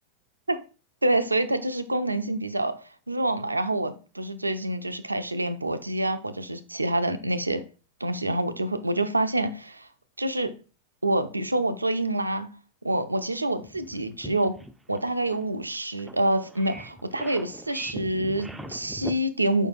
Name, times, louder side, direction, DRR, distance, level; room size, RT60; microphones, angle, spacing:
voice 1, 1.0-2.7 3.1-7.6 8.0-9.9 10.2-10.5 11.0-12.5 12.8-14.5 14.9-19.7, right 1 dB, 85° right, 0.4 m, -27 dB
sound 1, 13.6-19.2, right 1 dB, 5° right, 0.4 m, -41 dB
4.8 x 4.5 x 2.4 m
figure-of-eight pair, 90°, 0 cm